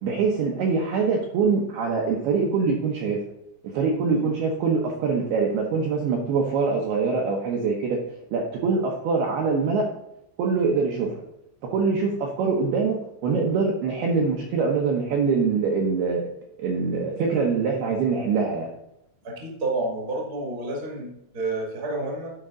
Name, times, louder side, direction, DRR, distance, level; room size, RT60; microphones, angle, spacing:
voice 1, 0.0-3.2 3.7-8.0 8.3-9.9 10.4-11.2 11.7-16.3 16.6-18.7, right 4 dB, 75° right, 0 dB, 2.4 m, -24 dB
voice 2, 19.2-22.3, right 2 dB, 40° right, -1 dB, 1.3 m, -30 dB
11.5 x 5.3 x 3.8 m, 0.83 s
omnidirectional pair, 5.7 m